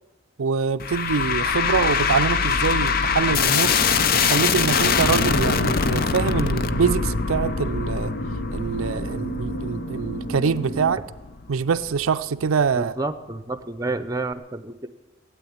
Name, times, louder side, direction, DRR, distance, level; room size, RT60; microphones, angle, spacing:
voice 1, 0.4-3.8 4.2-8.1 8.5-11.0 11.5-12.9, right 6 dB, 80° right, 0.4 m, -24 dB
sound 1, 0.8-12.1, left 5 dB, 45° left, 0.6 m, -23 dB
sound 2, 3.2-10.9, right 1 dB, 60° left, 1.4 m, -33 dB
voice 2, 12.8-14.9, right 2 dB, 15° right, 0.7 m, -29 dB
16.0 x 8.6 x 8.7 m
head